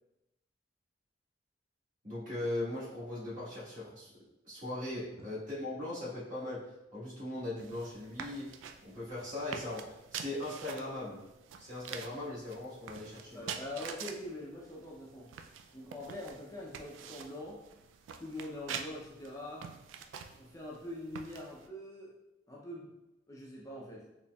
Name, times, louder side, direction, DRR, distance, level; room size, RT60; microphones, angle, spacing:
voice 1, 2.0-4.1 4.4-11.3 11.6-13.5, left 1 dB, 45° right, -8 dB, 1.4 m, -39 dB
sound 1, 7.6-21.7, right 7 dB, 85° right, 0.3 m, -47 dB
voice 2, 13.3-15.3 15.7-17.6 18.2-19.7 20.4-22.1 22.5-22.9 23.3-24.1, left 1 dB, 15° left, -3 dB, 0.4 m, -43 dB
4.1 x 3.0 x 2.2 m, 0.95 s
head